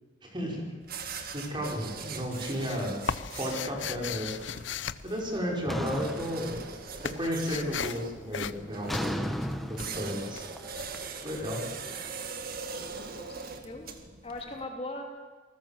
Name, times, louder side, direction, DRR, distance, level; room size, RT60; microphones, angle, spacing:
voice 1, 0.2-0.6 1.3-3.0 3.4-4.4 5.0-6.5 7.0-9.2 9.7-10.5 11.2-11.6, equal, 25° right, -1 dB, 5.3 m, -33 dB
sound 1, 0.8-14.6, right 5 dB, 50° right, 2.0 m, -42 dB
sound 2, 1.1-1.6 1.9-6.0 6.3-11.8, left 7 dB, 70° left, 0.8 m, -38 dB
sound 3, 5.7-7.2 7.5-8.0 8.9-11.9, equal, ahead, 1.3 m, -36 dB
voice 2, 12.7-13.9 14.2-15.2, left 1 dB, 30° left, 1 dB, 3.0 m, -41 dB
28.0 x 19.5 x 7.4 m, 1.4 s
head